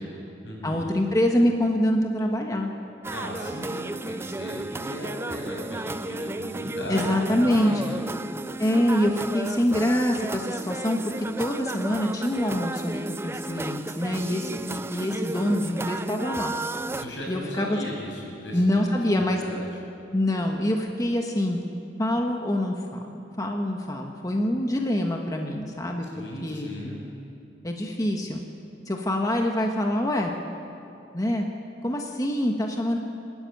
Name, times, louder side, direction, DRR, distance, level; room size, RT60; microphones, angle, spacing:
voice 1, 0.0-0.9 3.1-8.0 16.9-18.9 19.3-19.7 26.1-27.0, equal, 90° left, -2 dB, 6.9 m, -36 dB
voice 2, 0.6-2.7 6.9-7.8 8.6-16.5 17.3-17.8 18.5-19.6 20.1-21.6 22.0-26.0 26.4-26.7 27.6-28.4 28.8-30.3 31.1-31.4 31.8-33.0, left 1 dB, 20° left, 2 dB, 1.4 m, -25 dB
sound 1, 3.0-17.1, right 2 dB, 15° right, 0.4 m, -33 dB
24.0 x 12.5 x 9.3 m, 2.6 s
head